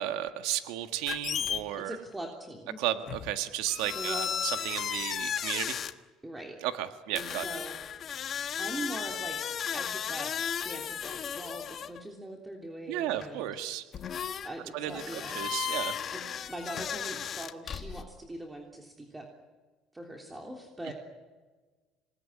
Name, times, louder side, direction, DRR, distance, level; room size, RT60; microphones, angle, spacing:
voice 1, 0.0-2.0 2.8-5.8 6.6-7.4 12.9-13.8 14.7-16.0 20.8-20.9, right 12 dB, 85° right, 8 dB, 1.6 m, -34 dB
sound 1, 1.1-1.6 3.1-3.3 3.7-5.9 7.2-12.0 13.2-13.3 13.9-14.5 14.8-18.0, left 8 dB, 40° left, 1.5 m, -35 dB
voice 2, 1.8-2.8 3.9-4.3 6.2-6.6 7.1-8.0 8.6-9.4 9.7-13.5 14.4-15.4 16.1-19.3 19.9-20.9, right 1 dB, 10° right, 1 dB, 3.4 m, -42 dB
27.0 x 20.0 x 10.0 m, 1.4 s
cardioid pair, 115°, 0 cm